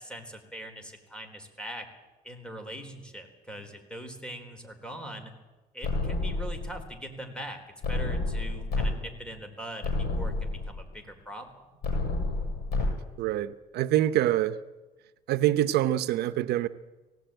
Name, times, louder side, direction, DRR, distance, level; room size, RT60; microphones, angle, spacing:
voice 1, 0.0-1.9 2.2-5.3 5.7-7.6 7.9-11.6, equal, 5° left, 3.9 m, -41 dB
sound 1, 5.8-6.8 7.8-8.9 9.3-9.4 9.8-10.8 11.8-12.9, left 3 dB, 70° left, 6.8 m, -29 dB
voice 2, 13.2-14.6 15.3-16.7, right 13 dB, 75° right, 0.8 m, -25 dB
19.0 x 17.0 x 9.0 m
cardioid pair, 110°, 17 cm